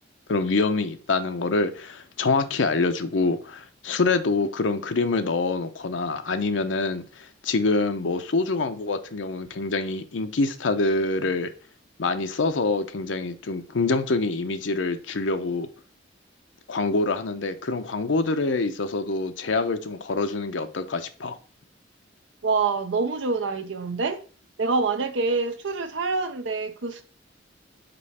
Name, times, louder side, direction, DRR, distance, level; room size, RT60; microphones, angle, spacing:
voice 1, 0.3-11.5 12.0-15.7 16.7-21.4, left 3 dB, 85° left, 0.6 m, -25 dB
voice 2, 22.4-24.2 24.6-27.0, right 4 dB, 80° right, 0.6 m, -26 dB
5.3 x 4.2 x 4.2 m
head